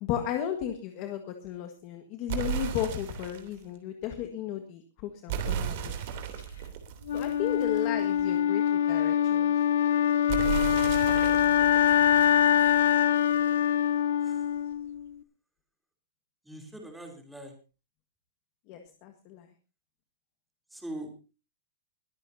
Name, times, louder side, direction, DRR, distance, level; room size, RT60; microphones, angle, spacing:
voice 1, 0.0-5.9 7.1-9.5 18.7-19.5, left 10 dB, 30° left, 6 dB, 1.6 m, -34 dB
sound 1, 2.3-3.5 5.3-8.0 10.3-13.0, right 9 dB, 40° right, 3.1 m, -35 dB
Wind instrument woodwind instrument, 7.1-15.1, left 10 dB, 70° left, 1.1 m, -24 dB
voice 2, 16.4-17.5 20.7-21.1, right 1 dB, ahead, 2 dB, 3.2 m, -42 dB
22.0 x 14.5 x 2.7 m, 0.32 s
supercardioid pair, 175°, 0 cm